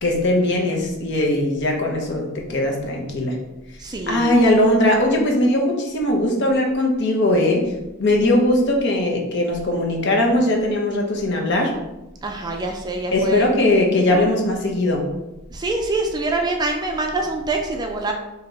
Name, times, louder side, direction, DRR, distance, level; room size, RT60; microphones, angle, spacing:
voice 1, 0.0-3.4 4.1-7.7 8.0-11.7 13.1-15.0, left 1 dB, 55° left, 1 dB, 0.8 m, -19 dB
voice 2, 3.8-4.4 12.2-13.4 14.1-14.2 15.5-18.1, right 2 dB, 20° right, 2 dB, 0.4 m, -25 dB
3.5 x 2.8 x 3.9 m, 0.98 s
head